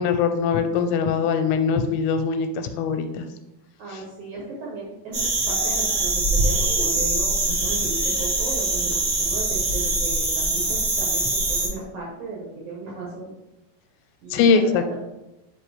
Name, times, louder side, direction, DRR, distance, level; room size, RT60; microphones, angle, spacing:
voice 1, 0.0-3.2 3.9-4.0 14.3-15.0, left 5 dB, 90° left, 7 dB, 2.7 m, -22 dB
voice 2, 3.8-13.3 14.2-14.9, right 3 dB, 70° right, -3 dB, 1.9 m, -35 dB
sound 1, 5.1-11.7, right 2 dB, 30° right, 1.7 m, -23 dB
5.7 x 5.2 x 3.3 m, 0.95 s
omnidirectional pair, 4.7 m